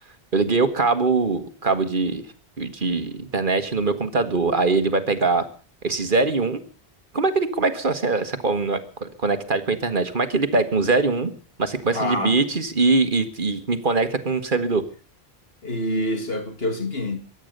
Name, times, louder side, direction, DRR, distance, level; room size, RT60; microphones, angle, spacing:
voice 1, 0.3-2.2 2.6-5.5 5.8-6.6 7.1-11.3 11.6-14.8, right 3 dB, 50° right, 1.6 m, -22 dB
voice 2, 11.9-12.4 15.6-17.2, left 1 dB, 65° left, 2.6 m, -26 dB
23.0 x 9.2 x 6.6 m
omnidirectional pair, 1.1 m